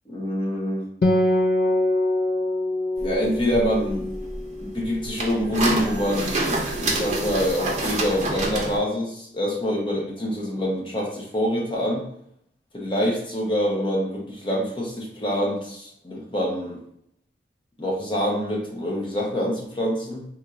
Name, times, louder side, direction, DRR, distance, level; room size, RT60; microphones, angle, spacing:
voice 1, 0.1-0.9 3.0-4.1 4.6-12.0 12.7-16.8 17.8-20.3, equal, 30° left, -3 dB, 0.8 m, -26 dB
Acoustic guitar, 1.0-4.7, left 1 dB, 55° left, 0.4 m, -23 dB
sound 1, 3.0-8.8, right 2 dB, 40° right, 0.6 m, -28 dB
4.1 x 3.0 x 2.5 m, 0.71 s
head